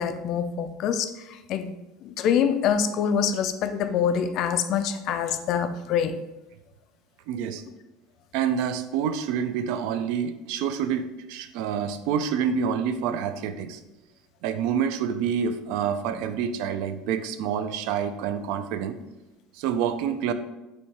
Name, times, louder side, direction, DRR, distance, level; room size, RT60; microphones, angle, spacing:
voice 1, 0.0-1.7 2.0-6.2, left 7 dB, 40° left, 10 dB, 0.3 m, -25 dB
voice 2, 7.3-7.6 8.3-13.8 14.4-19.0 19.5-20.3, right 7 dB, 60° right, 10 dB, 0.4 m, -27 dB
4.3 x 2.7 x 4.5 m, 0.99 s
cardioid pair, 170°, 0 cm